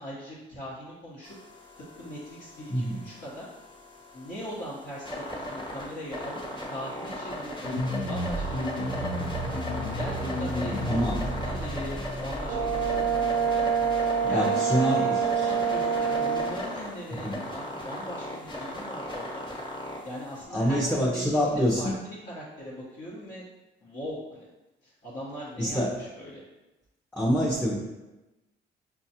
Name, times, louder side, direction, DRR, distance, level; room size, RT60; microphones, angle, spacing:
voice 1, 0.0-1.3 1.8-3.5 4.1-9.6 9.9-13.7 14.2-19.5 20.0-23.4 23.8-24.5 24.8-26.4, equal, 55° left, -8 dB, 1.0 m, -40 dB
sound 1, 1.2-20.4, left 1 dB, 25° left, 1.1 m, -38 dB
sound 2, 7.6-14.3, equal, 75° left, 0.7 m, -33 dB
voice 2, 10.9-11.2 14.2-15.0 17.2-17.4 20.5-21.9 25.6-25.9 27.1-27.7, equal, 5° left, -3 dB, 0.6 m, -25 dB
Brass instrument, 12.5-16.6, right 6 dB, 70° right, 0.5 m, -26 dB
5.6 x 2.3 x 2.8 m, 1.0 s
cardioid pair, 90°, 20 cm